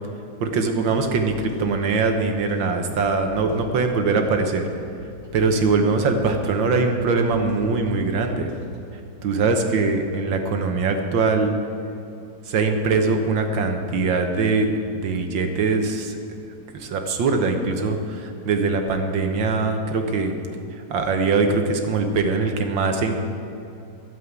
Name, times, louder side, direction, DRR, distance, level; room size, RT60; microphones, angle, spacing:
voice 1, 0.4-4.7 5.3-8.5 9.2-11.5 12.5-16.2 16.7-20.4 20.7-23.1, right 4 dB, 80° right, 5 dB, 1.9 m, -22 dB
sound 1, 1.4-9.0, equal, 30° right, 1.5 m, -46 dB
13.0 x 7.6 x 8.2 m, 2.6 s
omnidirectional pair, 2.1 m